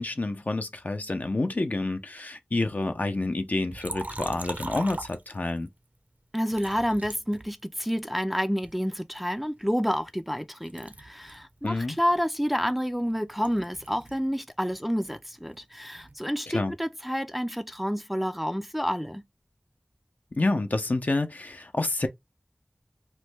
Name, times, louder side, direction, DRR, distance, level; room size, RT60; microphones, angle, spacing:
voice 1, 0.0-5.7 11.6-12.0 16.5-16.7 20.4-22.1, left 2 dB, 60° left, 0.5 m, -28 dB
Liquid, 3.7-5.7 6.5-8.0 8.6-10.4 10.6-14.3 14.6-16.2, right 2 dB, 55° right, 0.5 m, -42 dB
voice 2, 6.3-19.2, equal, 5° right, 0.3 m, -29 dB
3.1 x 2.2 x 3.1 m
wide cardioid pair, 45°, 3 cm